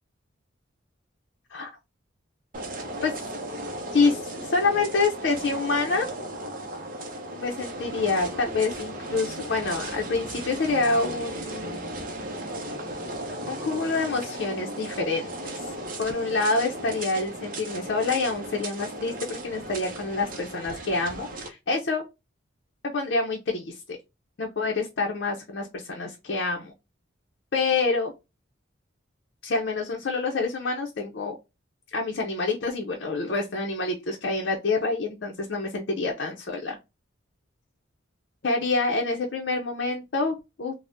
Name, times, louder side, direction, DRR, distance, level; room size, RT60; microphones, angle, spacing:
sound 1, 2.5-21.5, right 1 dB, 45° right, 0.6 m, -36 dB
voice 1, 3.9-6.1 7.4-11.8 13.5-15.7 16.0-22.0 22.9-24.0 24.4-26.7 27.5-28.1 29.4-31.4 31.9-36.8 38.4-40.7, left 3 dB, 60° left, 0.5 m, -27 dB
3.4 x 2.0 x 2.5 m
head